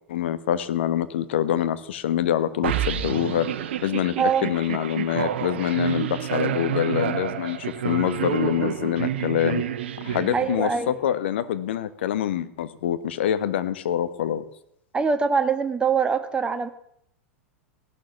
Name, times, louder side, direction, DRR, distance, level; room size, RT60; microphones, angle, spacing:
voice 1, 0.1-3.5 3.8-9.6 10.0-14.4, left 10 dB, 55° left, 13 dB, 1.4 m, -25 dB
sound 1, 2.6-10.9, right 10 dB, 55° right, 1.2 m, -29 dB
voice 2, 10.3-10.9 14.9-16.7, right 5 dB, 15° right, 8 dB, 1.4 m, -23 dB
17.0 x 12.0 x 7.2 m, 0.71 s
figure-of-eight pair, 95°, 7 cm